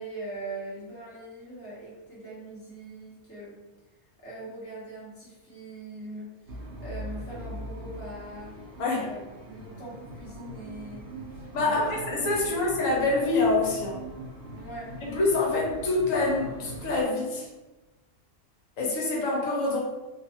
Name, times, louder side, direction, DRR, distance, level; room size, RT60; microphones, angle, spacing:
voice 1, 0.0-3.6 4.2-8.5 9.0-12.7 14.5-14.9, right 2 dB, 15° left, -8 dB, 0.6 m, -42 dB
sound 1, 6.5-17.0, equal, 70° right, 0.5 m, -41 dB
voice 2, 11.5-14.0 15.0-17.5 18.8-19.8, left 2 dB, 65° left, -2 dB, 1.0 m, -26 dB
2.6 x 2.3 x 2.8 m, 1.1 s
omnidirectional pair, 1.6 m